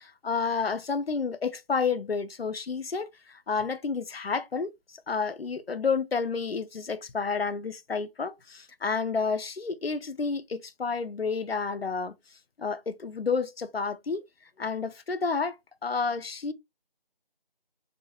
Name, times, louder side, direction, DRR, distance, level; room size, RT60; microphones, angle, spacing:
voice 1, 0.0-4.7 5.1-12.1 12.6-14.2 14.6-15.6 15.8-16.5, left 5 dB, 80° left, 0.7 m, -30 dB
3.9 x 3.8 x 2.4 m
figure-of-eight pair, 170°, 29 cm